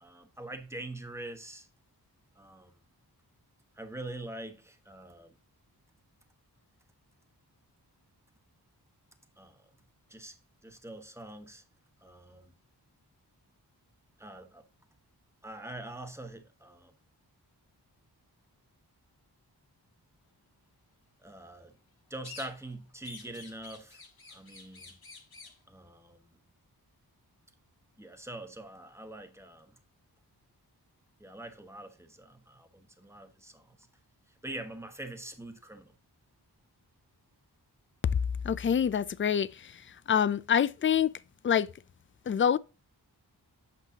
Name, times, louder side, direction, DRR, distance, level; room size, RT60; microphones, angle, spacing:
voice 1, 0.0-1.7 2.4-2.8 3.8-5.3 9.4-9.7 10.1-10.4 10.6-11.6 12.0-12.5 14.2-14.6 15.4-16.9 21.2-21.7 22.1-24.0 24.3-25.0 25.7-26.3 28.0-29.7 31.2-33.9 34.4-35.9, right 1 dB, 5° right, 1.2 m, -44 dB
sound 1, 22.2-22.8 23.0-25.6, left 4 dB, 65° left, 1.7 m, -49 dB
voice 2, 38.4-41.1 41.4-41.7 42.3-42.6, left 8 dB, 30° left, 0.4 m, -26 dB
8.2 x 5.7 x 2.8 m
cardioid pair, 55°, 40 cm